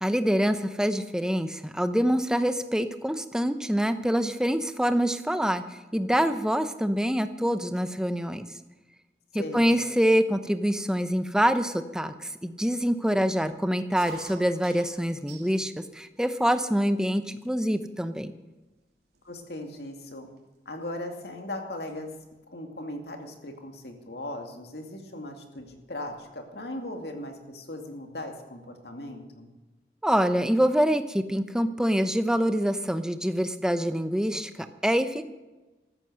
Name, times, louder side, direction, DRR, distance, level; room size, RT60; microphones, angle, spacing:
voice 1, 0.0-8.4 9.3-18.3 30.0-35.3, equal, 5° right, 10 dB, 0.7 m, -25 dB
voice 2, 9.4-9.7 19.2-20.3 20.7-22.1 22.5-29.5, left 1 dB, 65° left, 4 dB, 2.4 m, -38 dB
sound 1, 14.0-15.7 16.1-16.8 17.4-17.5 17.8-18.2 18.8-18.9 19.1-21.4 21.7-22.0 23.3-23.6 24.7-24.8 25.0-25.1 25.4-26.2, right 3 dB, 65° right, 3.2 m, -51 dB
14.0 x 13.5 x 6.3 m, 1.1 s
head